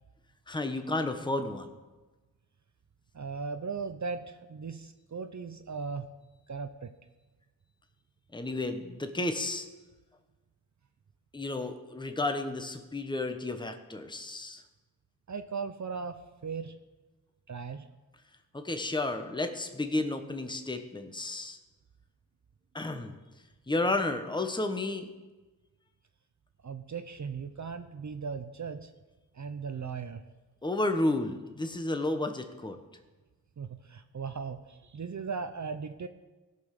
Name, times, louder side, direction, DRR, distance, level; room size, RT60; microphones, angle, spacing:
voice 1, 0.5-1.7 8.3-9.7 11.3-14.6 18.5-21.6 22.7-23.2 23.7-25.1 30.6-32.8, left 2 dB, 10° left, 7 dB, 1.1 m, -32 dB
voice 2, 3.1-6.1 6.5-6.9 15.3-16.8 17.5-17.9 26.6-28.9 29.3-30.2 33.6-36.1, right 5 dB, 50° right, 8 dB, 0.7 m, -38 dB
16.5 x 5.5 x 6.6 m, 1.2 s
cardioid pair, 60°, 39 cm